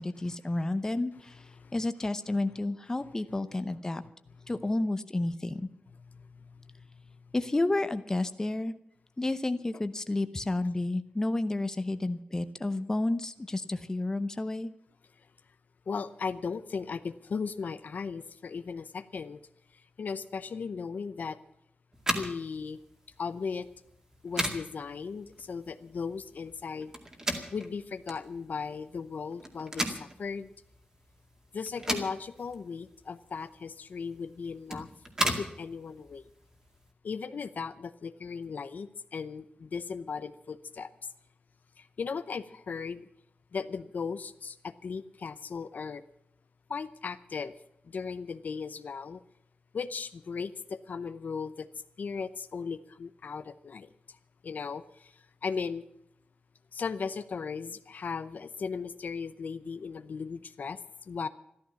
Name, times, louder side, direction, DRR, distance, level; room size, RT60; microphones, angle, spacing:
voice 1, 0.0-1.4 1.7-4.0 4.5-5.7 7.3-8.7 9.2-14.7, left 2 dB, 20° left, 11 dB, 0.8 m, -31 dB
voice 2, 6.1-6.9 15.9-19.4 20.0-21.4 22.1-22.8 23.2-23.7 24.2-26.9 27.5-30.5 31.5-34.9 35.4-36.2 37.0-40.9 41.8-43.1 43.5-46.0 46.7-47.5 47.9-49.2 49.7-51.7 52.0-53.9 54.4-55.1 55.4-55.8 56.7-60.8 61.1-61.3, left 5 dB, 60° left, 12 dB, 0.7 m, -37 dB
sound 1, 21.9-36.9, right 1 dB, 20° right, 2.1 m, -37 dB
14.0 x 13.0 x 7.0 m, 0.77 s
wide cardioid pair, 160°, 3 cm